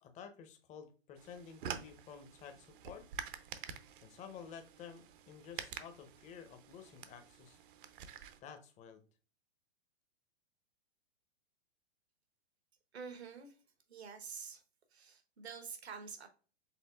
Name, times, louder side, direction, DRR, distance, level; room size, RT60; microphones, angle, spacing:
voice 1, 0.0-3.1 4.0-7.6 8.4-9.0, left 7 dB, 25° left, 0.7 m, -52 dB
sound 1, 1.2-8.4, right 8 dB, 55° right, 0.7 m, -48 dB
voice 2, 12.9-13.6 13.9-14.6 14.9-16.3, right 6 dB, 80° right, 1.1 m, -47 dB
5.7 x 3.7 x 2.3 m
hypercardioid pair, 110°, 32 cm